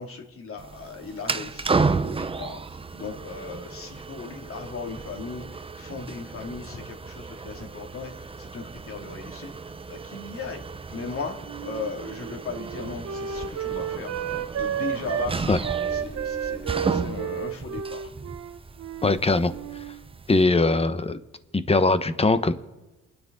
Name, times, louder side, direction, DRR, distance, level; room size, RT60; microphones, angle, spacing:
voice 1, 0.0-9.5 9.9-10.6 10.9-14.1 14.5-18.1, left 4 dB, 45° left, 3 dB, 2.9 m, -37 dB
sound 1, 0.6-20.4, right 4 dB, 20° right, 0.6 m, -33 dB
Wind instrument woodwind instrument, 11.4-15.3 15.6-19.2 19.5-20.0, right 8 dB, 60° right, 1.0 m, -32 dB
voice 2, 19.0-19.5 20.3-21.2 21.5-22.5, left 3 dB, 20° left, 12 dB, 1.1 m, -21 dB
29.0 x 9.9 x 4.0 m, 1.1 s
cardioid pair, 90°, 30 cm